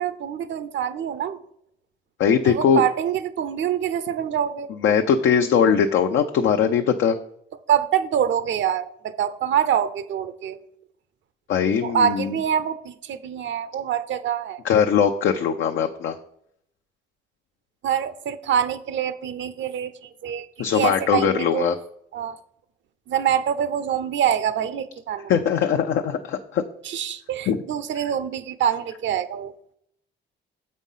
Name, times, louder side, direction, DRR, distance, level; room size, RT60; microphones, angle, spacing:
voice 1, 0.0-1.4 2.4-4.7 7.7-10.6 11.8-14.6 17.8-20.5 20.7-21.7 22.1-22.4 23.1-25.3 26.8-29.5, right 9 dB, 70° right, 13 dB, 0.8 m, -25 dB
voice 2, 2.2-2.8 4.8-7.2 11.5-12.4 14.6-16.2 20.6-21.8 25.3-26.6 27.5-27.6, left 7 dB, 75° left, 4 dB, 0.7 m, -20 dB
7.4 x 5.3 x 5.6 m, 0.71 s
cardioid pair, 90°, 20 cm